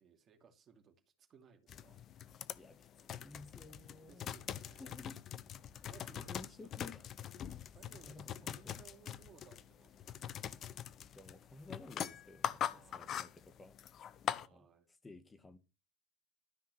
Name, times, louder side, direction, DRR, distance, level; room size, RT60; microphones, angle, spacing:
voice 1, 0.0-2.0 4.1-5.0 5.9-6.7 7.4-10.4 12.7-13.3 14.4-14.9, right 6 dB, 35° right, 2.8 m, -63 dB
sound 1, 1.7-14.5, left 9 dB, 40° left, 0.9 m, -43 dB
voice 2, 2.6-5.2 6.1-7.1 7.9-8.8 11.1-13.7 14.5-14.7 15.0-15.6, left 3 dB, 15° left, 1.7 m, -54 dB
13.0 x 5.7 x 6.0 m
hypercardioid pair, 80°, 0 cm